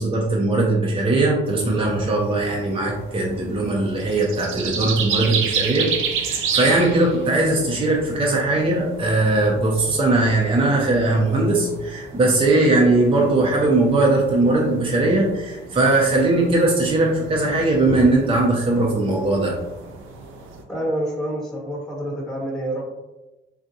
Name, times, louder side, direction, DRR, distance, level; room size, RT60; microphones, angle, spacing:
voice 1, 0.0-5.9 6.2-19.5, right 2 dB, 25° right, -2 dB, 0.7 m, -19 dB
sound 1, 1.5-20.6, right 6 dB, 80° right, 0.6 m, -32 dB
voice 2, 20.7-22.8, right 1 dB, ahead, -5 dB, 1.1 m, -27 dB
3.6 x 2.4 x 2.7 m, 1.0 s
cardioid pair, 90°, 20 cm